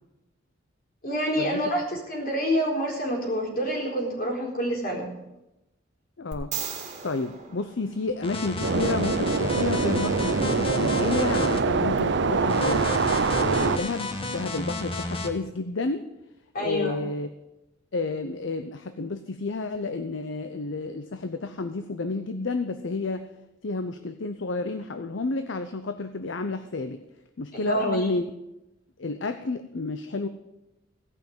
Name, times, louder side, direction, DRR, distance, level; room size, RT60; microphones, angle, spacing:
voice 1, 1.0-5.1 16.5-17.0 27.5-28.1, equal, 50° left, -1 dB, 4.1 m, -27 dB
voice 2, 6.2-6.6 7.0-13.0 13.4-16.1 16.6-17.3 17.9-23.3 23.6-27.0 27.4-28.3 29.0-30.3, left 3 dB, 70° left, 9 dB, 0.7 m, -30 dB
sound 1, 6.3-8.6 12.0-12.1, right 7 dB, 40° right, 2.0 m, -37 dB
sound 2, 8.2-11.6 12.5-15.3, left 2 dB, 30° left, 1.3 m, -32 dB
sound 3, 8.6-13.8, right 4 dB, 65° right, 0.6 m, -24 dB
16.0 x 5.9 x 8.7 m, 0.93 s
head